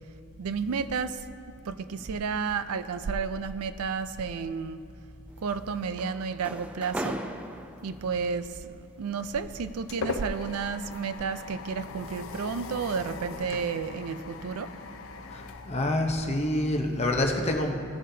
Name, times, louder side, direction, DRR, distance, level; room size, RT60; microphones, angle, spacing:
voice 1, 0.4-1.2 1.7-4.8 5.4-7.2 7.8-14.7, right 5 dB, 80° right, 12 dB, 0.4 m, -32 dB
sound 1, 5.3-8.2 9.4-11.3 11.7-12.0 12.4-12.7, right 1 dB, 5° right, 0.3 m, -39 dB
sound 2, 9.2-16.6, left 4 dB, 60° left, 0.6 m, -40 dB
voice 2, 15.3-17.7, left 1 dB, 30° left, 2 dB, 0.8 m, -27 dB
17.5 x 7.5 x 2.8 m, 2.5 s
head